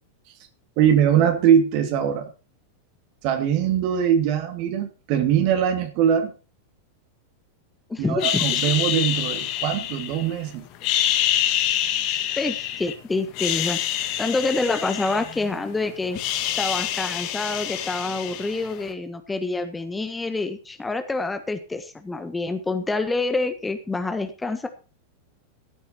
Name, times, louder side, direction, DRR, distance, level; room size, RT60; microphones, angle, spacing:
voice 1, 0.8-2.3 3.2-6.3 8.0-10.6, right 9 dB, 45° right, 5 dB, 2.9 m, -21 dB
voice 2, 7.9-8.6 12.1-13.8 14.2-16.2 16.6-24.7, left 3 dB, 10° left, 8 dB, 1.4 m, -27 dB
sound 1, 8.2-10.3 10.7-12.9 13.3-15.7 15.9-18.8, left 12 dB, 40° left, 1.8 m, -26 dB
15.5 x 9.4 x 4.4 m, 0.34 s
figure-of-eight pair, 90°, 0 cm